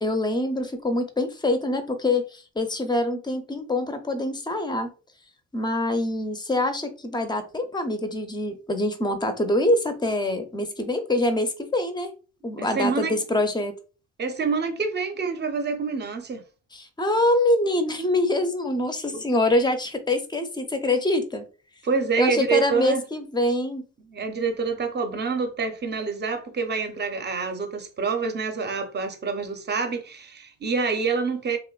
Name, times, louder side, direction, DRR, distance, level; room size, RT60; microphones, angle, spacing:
voice 1, 0.0-4.9 5.5-12.1 12.4-13.7 16.7-21.5 22.2-23.8, left 1 dB, 15° left, 0.5 m, -25 dB
voice 2, 12.6-13.2 14.2-16.4 19.1-19.2 21.8-23.0 24.1-31.6, right 5 dB, 35° right, 0.6 m, -27 dB
2.9 x 2.1 x 2.3 m
cardioid pair, 90°, 30 cm